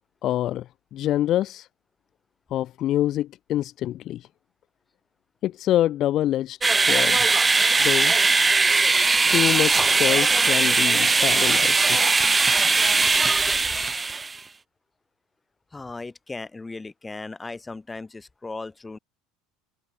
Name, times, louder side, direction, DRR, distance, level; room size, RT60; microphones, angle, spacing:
voice 1, 0.2-1.7 2.5-4.3 5.4-7.3 7.8-8.2 9.3-12.0, left 13 dB, 50° left, 1.9 m, -26 dB
sound 1, 6.6-14.4, right 3 dB, 20° right, 0.4 m, -20 dB
voice 2, 15.7-19.0, left 3 dB, 15° left, 6.6 m, -37 dB
hypercardioid pair, 70°, 0 cm